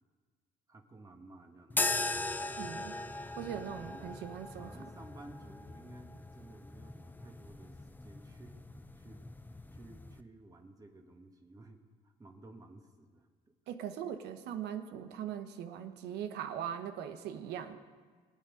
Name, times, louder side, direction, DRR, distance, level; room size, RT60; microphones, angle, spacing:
voice 1, 0.7-1.8 3.5-4.1 4.6-8.6 8.9-9.3 9.7-13.3, right 2 dB, 20° right, 3 dB, 1.4 m, -55 dB
sound 1, 1.7-10.2, left 2 dB, 10° left, 0.6 m, -39 dB
voice 2, 2.6-2.9 3.4-4.7 13.7-17.8, right 9 dB, 80° right, 8 dB, 1.1 m, -40 dB
23.5 x 8.5 x 5.0 m, 1.5 s
cardioid pair, 110°, 17 cm